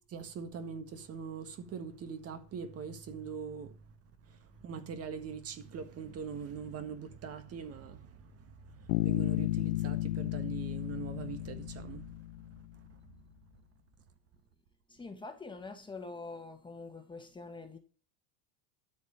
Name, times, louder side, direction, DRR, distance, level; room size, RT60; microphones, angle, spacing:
voice 1, 0.1-3.8 4.3-12.1 12.9-13.0, right 6 dB, 35° right, 1.7 m, -42 dB
Bass guitar, 8.9-12.6, left 17 dB, 90° left, 0.9 m, -33 dB
voice 2, 14.9-17.8, left 3 dB, 10° left, 1.7 m, -45 dB
12.5 x 5.4 x 8.5 m
supercardioid pair, 140°, 41 cm